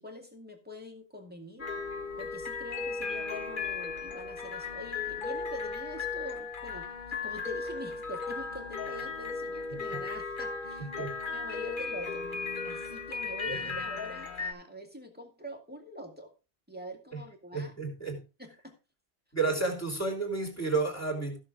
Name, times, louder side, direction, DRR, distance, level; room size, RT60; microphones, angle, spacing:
voice 1, 0.0-1.7 2.2-16.3 16.7-17.7 18.4-18.7 19.5-19.6, left 1 dB, 10° right, 2.1 m, -45 dB
sound 1, 1.6-14.5, left 4 dB, 45° left, 1.7 m, -36 dB
voice 2, 17.5-18.2 19.3-21.4, right 4 dB, 15° left, 3.4 m, -31 dB
15.5 x 6.6 x 3.6 m
omnidirectional pair, 1.2 m